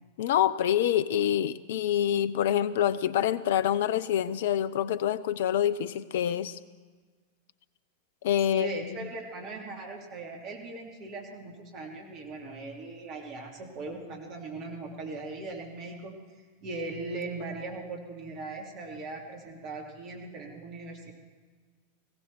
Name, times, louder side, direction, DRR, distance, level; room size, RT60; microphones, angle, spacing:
voice 1, 0.2-6.6 8.2-8.7, left 10 dB, 55° left, 17 dB, 0.6 m, -26 dB
voice 2, 8.5-16.2 16.6-21.1, right 2 dB, 40° right, 1 dB, 3.0 m, -39 dB
19.0 x 16.0 x 4.6 m, 1.5 s
figure-of-eight pair, 90°, 0 cm